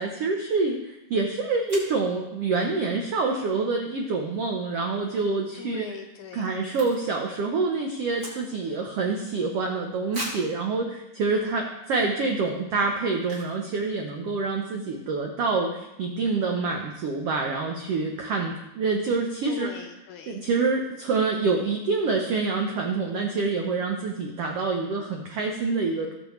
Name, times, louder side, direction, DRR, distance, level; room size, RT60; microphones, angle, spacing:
voice 1, 0.0-5.8 6.3-19.7 20.3-26.1, right 4 dB, 90° right, 2 dB, 1.3 m, -27 dB
sound 1, 1.0-1.1 1.7-2.0 5.0-5.2 5.5-5.6 5.8-7.3 7.5-8.8 9.3-9.4 10.1-10.6 11.2-11.3 11.8-12.0 13.2-13.6 13.9-14.0 14.2-14.5, right 1 dB, 30° right, 2.8 m, -39 dB
voice 2, 5.6-6.6 19.5-20.4, left 8 dB, 80° left, 5 dB, 1.8 m, -40 dB
18.0 x 6.8 x 3.2 m, 0.91 s
omnidirectional pair, 4.0 m